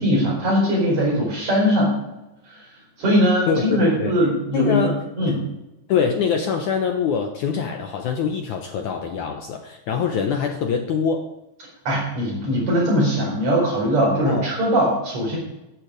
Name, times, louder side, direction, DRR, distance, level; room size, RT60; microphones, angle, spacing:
voice 1, 0.0-1.9 2.5-2.7 3.0-4.8 5.2-5.4 11.9-15.4, equal, 45° right, -4 dB, 5.7 m, -20 dB
voice 2, 3.5-4.2 4.5-5.0 5.3-5.4 5.9-11.3 14.3-14.5, left 6 dB, 80° left, 4 dB, 1.7 m, -24 dB
15.5 x 9.1 x 5.0 m, 0.96 s
omnidirectional pair, 4.6 m